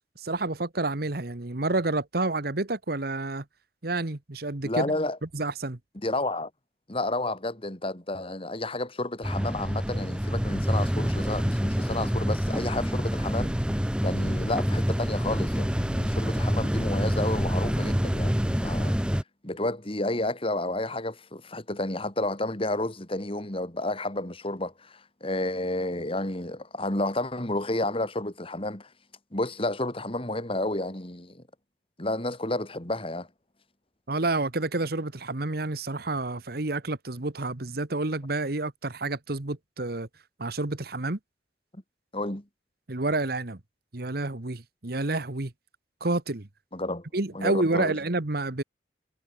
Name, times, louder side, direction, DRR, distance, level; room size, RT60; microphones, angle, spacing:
voice 1, 0.2-3.4 3.8-4.9 5.3-5.8 34.1-40.1 40.4-41.2 42.9-43.6 43.9-45.5 46.0-46.5 47.1-48.6, right 2 dB, 55° right, 1.4 m, -29 dB
voice 2, 4.6-5.2 5.9-6.5 6.9-13.5 14.0-19.0 19.4-28.9 29.3-31.4 32.0-33.3 42.1-42.4 46.7-47.1 47.3-47.9, left 2 dB, 30° left, 2.9 m, -31 dB
sound 1, 9.2-19.2, equal, 5° right, 1.2 m, -27 dB
head